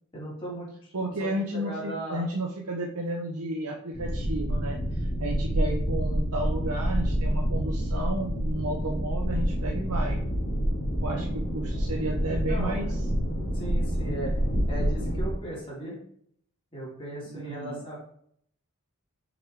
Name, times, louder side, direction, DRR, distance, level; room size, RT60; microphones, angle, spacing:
voice 1, 0.1-1.3 1.5-2.2 12.3-12.9 13.5-14.3 14.7-16.0 16.7-18.0, right 1 dB, 25° left, -6 dB, 2.9 m, -37 dB
voice 2, 0.9-10.2 11.0-13.0 17.3-17.9, right 1 dB, 85° right, 0 dB, 0.8 m, -33 dB
sound 1, 3.9-15.3, equal, 50° left, 2.6 m, -28 dB
6.1 x 4.8 x 4.7 m, 0.67 s
head